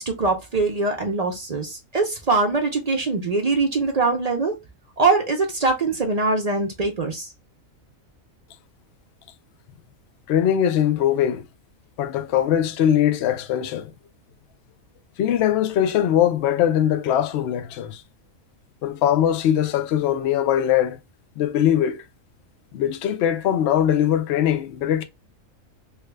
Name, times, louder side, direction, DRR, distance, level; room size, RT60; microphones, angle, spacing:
voice 1, 0.0-4.6 5.0-7.3, right 3 dB, 55° right, 0.4 m, -22 dB
voice 2, 10.3-11.4 12.0-13.9 15.2-18.0 18.8-21.0 21.4-22.0 22.7-25.0, left 10 dB, 65° left, 0.7 m, -21 dB
3.3 x 2.3 x 3.1 m
omnidirectional pair, 1.5 m